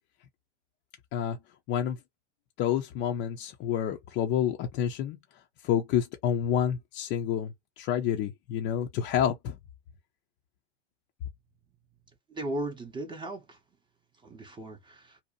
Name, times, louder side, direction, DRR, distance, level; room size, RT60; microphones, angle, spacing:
voice 1, 1.7-2.0 2.6-5.2 5.6-9.6, left 9 dB, 35° left, 0.4 m, -28 dB
voice 2, 12.3-13.6 14.2-15.2, right 1 dB, 15° right, 0.6 m, -37 dB
2.6 x 2.1 x 2.3 m
hypercardioid pair, 105°, 33 cm